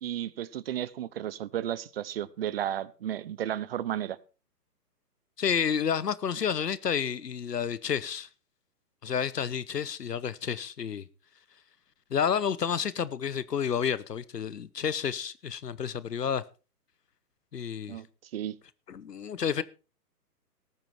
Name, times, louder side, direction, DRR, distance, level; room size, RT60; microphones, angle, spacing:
voice 1, 0.0-4.2 17.9-18.1 18.3-18.6, right 11 dB, 40° right, 0.8 m, -33 dB
voice 2, 5.4-8.3 9.0-11.0 12.1-16.4 17.5-18.0 18.9-19.6, left 7 dB, 75° left, 1.0 m, -30 dB
18.5 x 9.0 x 4.5 m
figure-of-eight pair, 130°, 49 cm